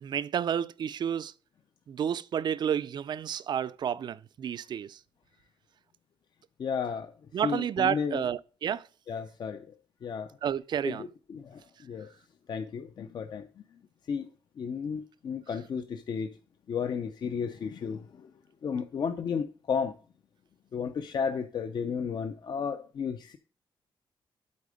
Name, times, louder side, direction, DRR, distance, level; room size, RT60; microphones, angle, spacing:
voice 1, 0.0-1.3 1.9-5.0 7.3-8.9 10.4-11.0, right 9 dB, 55° right, 0.4 m, -30 dB
voice 2, 6.6-7.1 7.4-8.2 9.1-9.7 10.0-10.3 10.8-12.1 12.5-13.5 14.1-14.3 14.6-16.4 16.7-18.3 18.6-20.0 20.7-23.4, left 6 dB, 55° left, 0.5 m, -33 dB
8.4 x 4.2 x 4.9 m
wide cardioid pair, 130°, 9 cm